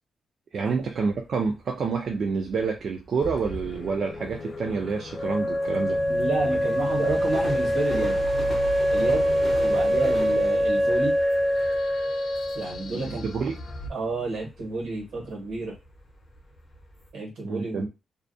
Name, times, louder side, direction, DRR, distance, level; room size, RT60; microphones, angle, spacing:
sound 1, 0.5-17.1, left 1 dB, 25° left, 0.7 m, -41 dB
voice 1, 0.5-6.0 12.9-13.6 17.4-17.9, right 5 dB, 55° right, 2 dB, 0.3 m, -28 dB
sound 2, 3.2-13.9, equal, 55° left, 0.4 m, -40 dB
Wind instrument woodwind instrument, 5.1-12.9, equal, 10° right, 0.6 m, -24 dB
voice 2, 6.1-8.2 8.9-11.2 12.5-13.2 13.9-15.7 17.1-17.9, right 3 dB, 85° right, -1 dB, 1.1 m, -30 dB
2.4 x 2.2 x 2.5 m, 0.26 s
wide cardioid pair, 150°, 0 cm